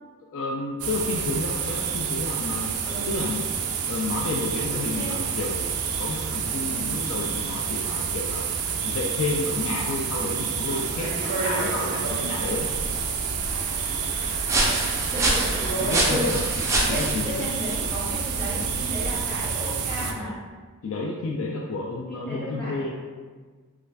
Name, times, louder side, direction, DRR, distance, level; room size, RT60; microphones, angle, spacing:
voice 1, 0.3-2.8 3.1-3.5 3.9-8.5 8.8-12.7 15.3-15.4 15.8-17.6 20.8-22.9, left 3 dB, 65° left, 0 dB, 0.3 m, -31 dB
sound 1, 0.8-20.1, right 6 dB, 80° right, 0.4 m, -29 dB
voice 2, 4.6-5.2 6.7-6.9 15.0-15.6 16.1-20.3 22.1-22.9, equal, 5° left, -10 dB, 1.1 m, -34 dB
Speech, 10.6-16.4, right 1 dB, 35° left, 1.5 m, -34 dB
sound 2, 12.2-19.5, right 1 dB, 15° right, 0.5 m, -28 dB
3.1 x 2.3 x 3.3 m, 1.5 s
head